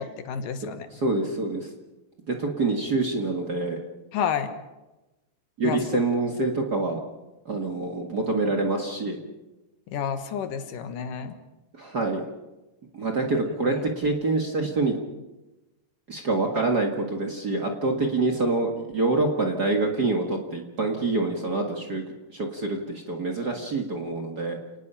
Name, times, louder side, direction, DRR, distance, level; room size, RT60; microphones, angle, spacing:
voice 1, 0.0-0.9 4.1-4.5 5.6-5.8 9.9-11.4 13.7-13.8, left 7 dB, 75° left, 8 dB, 2.9 m, -30 dB
voice 2, 1.0-1.7 2.3-3.8 5.6-7.0 7.5-9.2 11.7-12.2 12.9-15.0 16.1-22.0 22.3-24.6, right 3 dB, 35° right, 2 dB, 1.9 m, -26 dB
29.5 x 19.0 x 5.7 m, 1.1 s
omnidirectional pair, 3.8 m